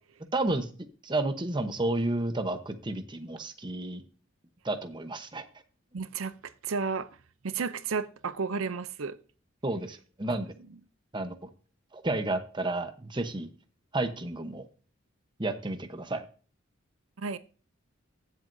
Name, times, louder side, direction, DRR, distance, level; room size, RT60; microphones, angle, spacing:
voice 1, 0.3-0.7 1.0-4.0 4.6-5.4 9.6-10.5 11.1-11.5 11.9-13.5 13.9-14.7 15.4-16.2, right 2 dB, 25° right, 1.0 m, -31 dB
voice 2, 5.9-7.1 7.4-9.2 10.3-10.4 17.2-17.4, right 5 dB, 85° right, 0.6 m, -32 dB
15.5 x 7.6 x 2.7 m
head